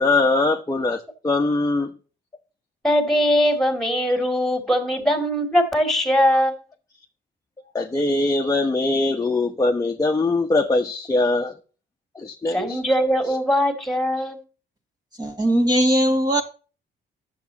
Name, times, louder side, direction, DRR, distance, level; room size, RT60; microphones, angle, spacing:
voice 1, 0.0-1.9 7.7-11.5 12.1-12.8, left 2 dB, 20° left, 1.1 m, -22 dB
voice 2, 2.8-6.6 12.5-14.4, equal, ahead, 2.6 m, -21 dB
voice 3, 15.2-16.4, right 1 dB, 20° right, 2.0 m, -19 dB
10.5 x 7.5 x 2.9 m
cardioid pair, 90°, 20 cm